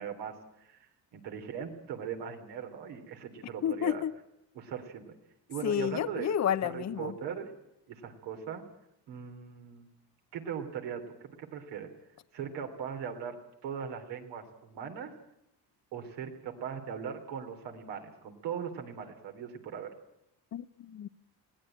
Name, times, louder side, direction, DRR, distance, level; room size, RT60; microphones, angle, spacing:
voice 1, 0.0-4.0 4.5-5.0 5.5-6.3 6.7-7.5 7.9-8.6 9.1-9.9 10.3-11.9 12.3-13.4 13.6-15.1 15.9-19.9, right 7 dB, 85° right, 3.2 m, -39 dB
voice 2, 3.6-4.1 5.6-7.1 20.5-21.1, left 10 dB, 40° left, 0.7 m, -30 dB
21.0 x 16.5 x 8.9 m
cardioid pair, 85°, 41 cm